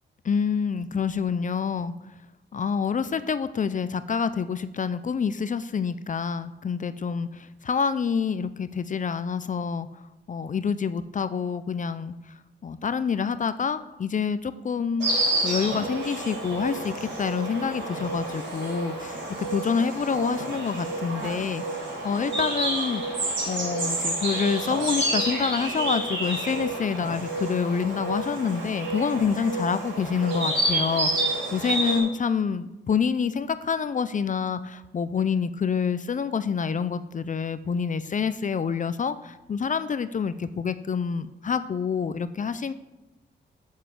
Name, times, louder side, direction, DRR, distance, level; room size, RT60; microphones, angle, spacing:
voice 1, 0.2-1.9 2.5-9.9 10.3-12.1 12.6-15.1 15.4-19.2 19.5-21.6 22.0-23.0 23.5-42.7, left 6 dB, 45° left, 13 dB, 0.5 m, -27 dB
Insect, 15.0-32.0, right 2 dB, 80° right, 4.6 m, -29 dB
7.8 x 7.5 x 7.6 m, 1.0 s
wide cardioid pair, 110°, 19 cm